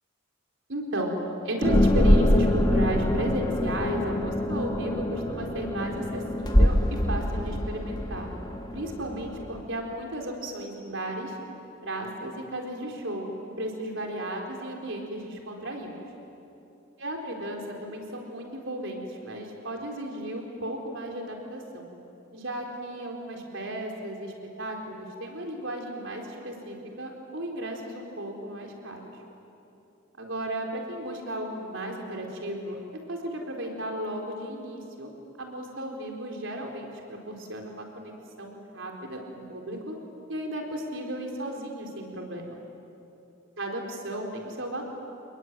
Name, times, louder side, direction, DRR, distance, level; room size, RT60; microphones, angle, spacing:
voice 1, 0.7-1.1 1.4-8.3 8.7-11.4 11.8-15.9 17.0-21.9 22.3-29.1 30.2-32.8 33.1-35.1 35.4-40.0 40.3-42.6 43.6-44.8, right 1 dB, 60° right, 1 dB, 4.3 m, -34 dB
sound 1, 1.6-9.6, left 1 dB, 20° left, 1.7 m, -24 dB
28.5 x 21.0 x 9.2 m, 2.9 s
head